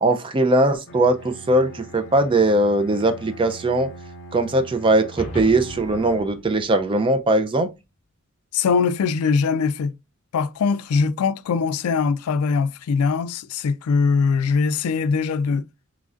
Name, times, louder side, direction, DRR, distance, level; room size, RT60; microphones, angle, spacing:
voice 1, 0.0-3.9 4.3-7.7, right 2 dB, 25° right, 0.4 m, -20 dB
Bowed string instrument, 0.9-6.5, right 2 dB, 60° left, 0.7 m, -42 dB
sound 1, 5.2-7.7, left 1 dB, 30° left, 1.0 m, -38 dB
voice 2, 8.5-9.9 10.3-15.7, left 5 dB, 90° left, 0.3 m, -21 dB
3.7 x 3.1 x 2.4 m
head